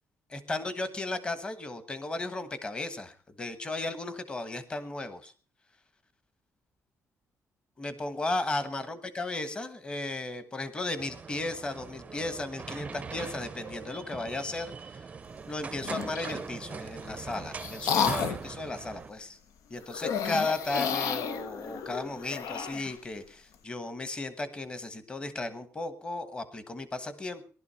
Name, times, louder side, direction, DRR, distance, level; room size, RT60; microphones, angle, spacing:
voice 1, 0.3-5.3 7.8-15.1 15.5-19.4 19.7-27.4, left 2 dB, 15° left, 12 dB, 1.3 m, -35 dB
sound 1, 11.0-19.1, right 5 dB, 25° right, 0.6 m, -41 dB
sound 2, 15.8-16.4 17.1-18.5 19.9-22.9, left 7 dB, 75° left, 1.3 m, -32 dB
19.0 x 12.0 x 5.7 m, 0.42 s
cardioid pair, 180°, 6 cm